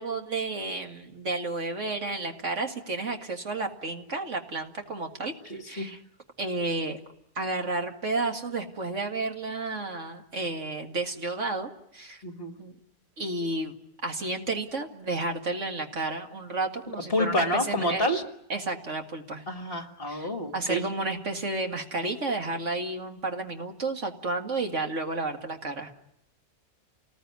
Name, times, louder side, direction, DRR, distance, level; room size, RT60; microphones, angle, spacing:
voice 1, 0.0-5.3 5.7-6.0 6.4-7.0 7.4-12.2 12.6-12.8 13.2-13.8 14.0-18.1 18.5-19.4 20.1-20.3 20.5-25.9, right 3 dB, 55° right, 4 dB, 2.3 m, -31 dB
voice 2, 5.5-5.9 12.2-12.5 17.1-18.2 19.5-20.8, left 1 dB, 40° left, 5 dB, 2.0 m, -28 dB
28.5 x 20.0 x 9.5 m, 0.83 s
omnidirectional pair, 1.5 m